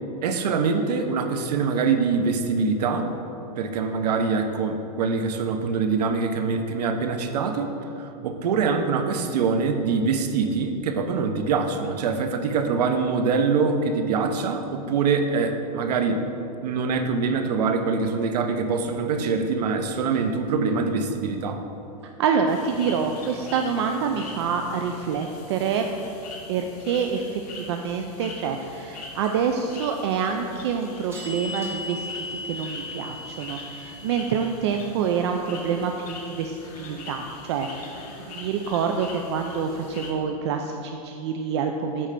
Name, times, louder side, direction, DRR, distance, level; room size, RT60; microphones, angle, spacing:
voice 1, 0.2-3.1 3.6-7.7 8.0-16.3 16.6-21.6, right 5 dB, 85° right, 6 dB, 0.8 m, -24 dB
sound 1, 20.1-20.2 30.5-34.4, left 2 dB, 10° right, 1.1 m, -37 dB
voice 2, 22.2-25.9 26.5-37.9 38.3-42.1, right 6 dB, 45° right, 4 dB, 0.4 m, -27 dB
sound 2, 22.5-40.1, left 3 dB, 75° left, 1.7 m, -42 dB
8.8 x 3.3 x 6.6 m, 3.0 s
supercardioid pair, 170°, 20 cm